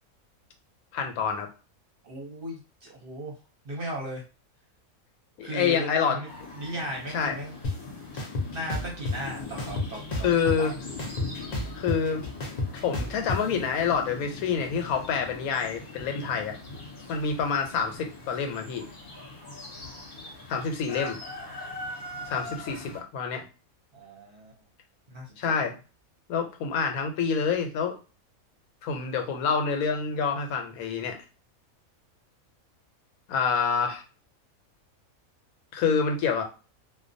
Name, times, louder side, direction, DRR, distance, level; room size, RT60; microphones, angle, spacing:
voice 1, 0.9-1.5 5.4-6.2 7.1-7.3 10.2-10.8 11.7-12.2 12.8-16.6 17.1-18.8 20.5-21.2 22.3-23.4 25.4-25.7 26.3-27.9 28.8-31.2 33.3-34.0 35.7-36.4, left 6 dB, 90° left, 4 dB, 1.1 m, -27 dB
voice 2, 2.0-3.3 3.6-4.2 5.4-6.3 6.5-7.6 8.4-10.7 19.7-20.1 23.9-24.6 25.1-25.7, right 1 dB, 50° right, -1 dB, 0.8 m, -37 dB
sound 1, 6.3-23.0, left 2 dB, 45° left, 0.8 m, -41 dB
sound 2, 7.6-7.7 8.2-9.2 9.6-10.7 11.0-13.4, left 2 dB, 65° left, 0.4 m, -30 dB
2.4 x 2.2 x 2.5 m, 0.33 s
omnidirectional pair, 1.5 m